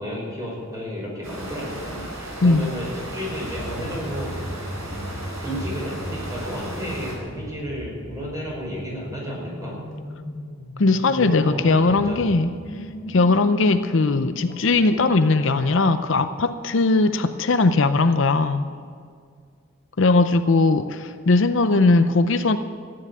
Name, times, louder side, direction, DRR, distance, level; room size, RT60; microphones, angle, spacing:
voice 1, 0.0-4.3 5.4-9.8 11.1-12.3, equal, 15° right, -4 dB, 5.4 m, -32 dB
sound 1, 1.2-7.1, right 1 dB, 75° right, 5.1 m, -35 dB
sound 2, 3.5-15.9, left 1 dB, 85° left, 1.8 m, -37 dB
voice 2, 10.8-12.5 13.1-18.7 20.0-22.6, left 3 dB, 65° left, 10 dB, 0.6 m, -19 dB
14.5 x 9.7 x 9.1 m, 2.1 s
head